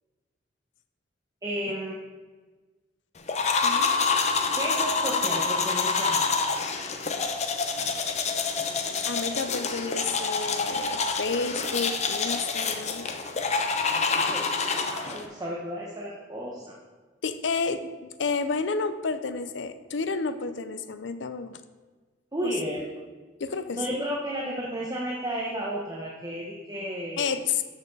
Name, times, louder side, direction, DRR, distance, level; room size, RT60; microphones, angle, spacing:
voice 1, 1.4-1.9 4.5-6.3 13.9-16.7 22.3-22.8 23.7-27.4, equal, 20° right, -3 dB, 1.1 m, -33 dB
sound 1, 3.3-15.2, left 4 dB, 40° left, 0.8 m, -27 dB
voice 2, 9.1-13.1 17.2-17.9 18.2-21.6 22.4-22.5 23.4-24.0 27.2-27.6, left 4 dB, 75° left, 11 dB, 0.6 m, -31 dB
12.5 x 6.3 x 4.0 m, 1.3 s
head